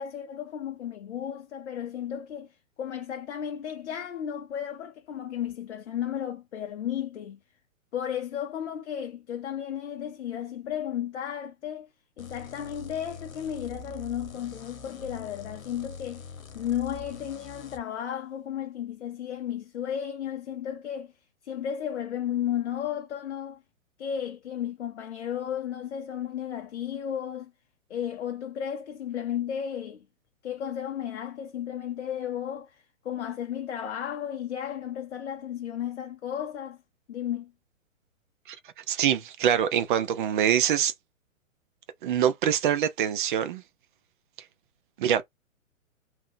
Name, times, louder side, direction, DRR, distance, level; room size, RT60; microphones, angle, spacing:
voice 1, 0.0-7.4 7.9-11.9 12.2-16.3 16.5-21.1 21.4-23.6 24.0-27.5 27.9-30.1 30.4-36.8 37.1-37.5, left 9 dB, 55° left, 0.7 m, -34 dB
sound 1, 12.2-17.8, left 4 dB, 75° left, 1.0 m, -44 dB
voice 2, 38.5-40.9 42.0-43.6 45.0-45.2, right 9 dB, 40° right, 0.7 m, -25 dB
3.6 x 2.8 x 2.7 m
figure-of-eight pair, 125°, 41 cm